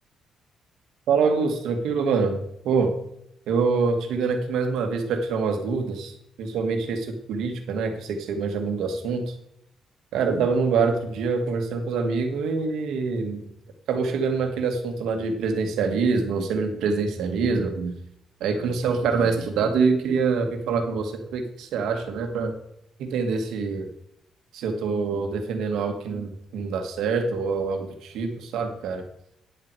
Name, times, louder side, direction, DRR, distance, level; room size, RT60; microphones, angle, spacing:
voice 1, 1.1-2.9 3.5-9.3 10.1-13.5 13.9-18.0 18.4-22.5 23.0-23.9 24.5-29.0, right 4 dB, 80° right, 5 dB, 1.9 m, -25 dB
10.0 x 8.2 x 4.8 m, 0.76 s
cardioid pair, 90°, 0 cm